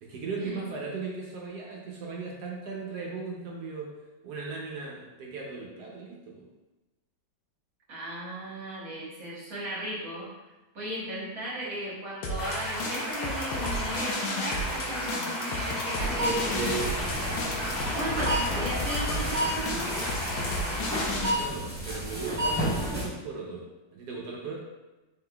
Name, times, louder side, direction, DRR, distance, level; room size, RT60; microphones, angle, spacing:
voice 1, 0.0-3.9 4.2-6.5 21.0-23.7 23.9-24.6, right 4 dB, 65° right, -2 dB, 1.1 m, -38 dB
voice 2, 7.9-10.3 10.7-16.6 17.8-20.1, right 1 dB, 50° right, -6 dB, 1.3 m, -36 dB
sound 1, 12.2-21.3, left 2 dB, 80° left, 1.4 m, -34 dB
sound 2, 12.4-21.1, equal, 55° left, 1.3 m, -34 dB
sound 3, 16.0-23.0, right 1 dB, 10° left, 0.5 m, -31 dB
4.4 x 3.7 x 2.2 m, 1.1 s
omnidirectional pair, 2.1 m